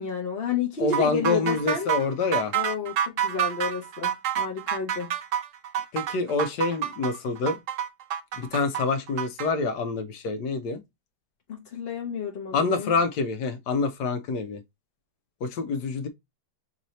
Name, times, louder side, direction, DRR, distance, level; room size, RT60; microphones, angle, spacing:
voice 1, 0.0-1.9 2.5-5.1 11.5-12.9, left 6 dB, 45° left, 1.0 m, -31 dB
voice 2, 0.8-2.5 5.9-7.6 8.4-10.8 12.5-14.6 15.4-16.1, left 4 dB, 85° left, 1.4 m, -26 dB
sound 1, 0.9-9.5, right 10 dB, 60° right, 0.9 m, -28 dB
5.8 x 2.7 x 3.0 m
omnidirectional pair, 1.8 m